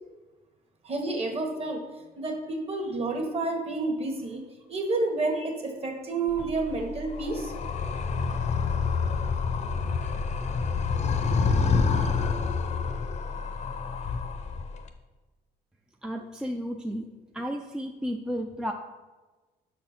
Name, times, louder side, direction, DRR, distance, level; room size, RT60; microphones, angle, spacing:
voice 1, 0.8-1.8 2.2-7.5, right 3 dB, 35° right, 3 dB, 1.4 m, -30 dB
Animal, 6.3-14.9, left 5 dB, 45° left, 0.7 m, -28 dB
voice 2, 16.0-17.1 17.3-18.7, equal, 5° right, 3 dB, 0.4 m, -33 dB
6.2 x 4.3 x 5.9 m, 1.2 s
cardioid pair, 110°, 17 cm